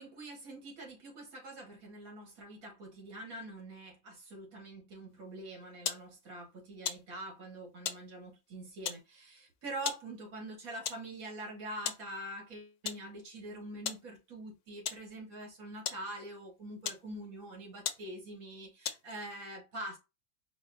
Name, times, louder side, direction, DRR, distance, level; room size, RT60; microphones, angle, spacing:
voice 1, 0.0-20.0, right 1 dB, 70° right, 1.8 m, -45 dB
child's wrist watch, 5.9-6.1 6.9-7.1 7.9-8.0 8.9-9.0 9.9-10.0 10.9-11.1 11.9-12.1 12.9-13.1 13.9-14.1 14.9-15.1 15.9-16.0 16.8-17.1 17.5-17.6 17.9-18.1 18.9-19.2, left 8 dB, 75° left, 1.0 m, -37 dB
4.9 x 2.0 x 3.9 m
omnidirectional pair, 1.6 m